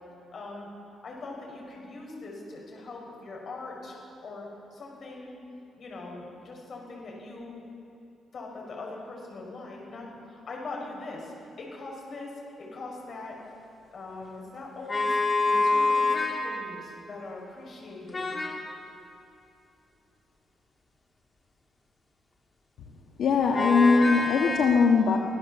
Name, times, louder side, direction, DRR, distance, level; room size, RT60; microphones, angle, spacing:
voice 1, 0.3-0.7 1.0-4.0 4.2-5.4 5.8-7.6 8.3-13.4 13.9-15.2 15.5-18.3, left 3 dB, 45° left, -1 dB, 5.9 m, -41 dB
sound 1, 14.9-16.5 18.1-18.6 23.5-24.6, left 3 dB, 25° left, 2.4 m, -25 dB
voice 2, 23.2-25.2, left 5 dB, 65° left, 0 dB, 1.6 m, -21 dB
25.0 x 16.0 x 7.3 m, 2.8 s
cardioid pair, 160°, 0 cm